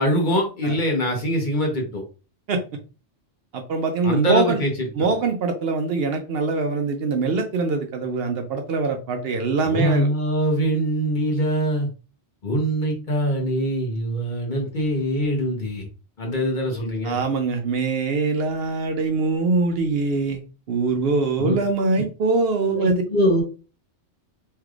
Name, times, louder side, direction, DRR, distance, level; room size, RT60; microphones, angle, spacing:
voice 1, 0.0-2.0 4.0-4.7 5.0-5.2 9.6-11.9 12.4-15.8 16.2-17.2 21.4-21.6 22.7-23.4, equal, 45° left, 0 dB, 1.0 m, -23 dB
voice 2, 3.5-4.6 5.0-10.1 17.0-20.4 20.7-23.0, right 3 dB, 65° right, 5 dB, 0.7 m, -23 dB
3.3 x 3.2 x 2.4 m, 0.33 s
omnidirectional pair, 1.2 m